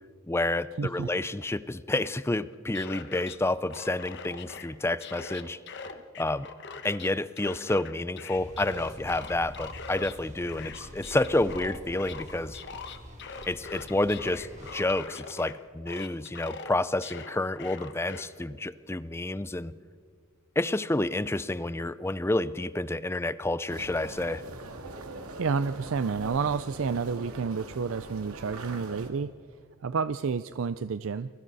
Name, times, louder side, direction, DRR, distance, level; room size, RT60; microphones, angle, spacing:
voice 1, 0.3-5.6 6.2-6.5 6.8-12.6 13.5-19.8 20.6-24.4, left 2 dB, 10° left, 16 dB, 0.4 m, -29 dB
voice 2, 0.8-1.1 25.4-29.3 29.8-31.3, right 5 dB, 65° right, 13 dB, 0.4 m, -30 dB
sound 1, 2.5-3.4 3.7-4.7 5.0-7.1 7.4-10.1 10.5-15.5 15.9-18.2, left 4 dB, 50° left, 1.3 m, -42 dB
sound 2, 8.4-14.8, equal, 35° right, 3.0 m, -46 dB
sound 3, 23.7-29.1, right 2 dB, 90° right, 2.3 m, -42 dB
29.5 x 22.5 x 4.1 m, 2.1 s
head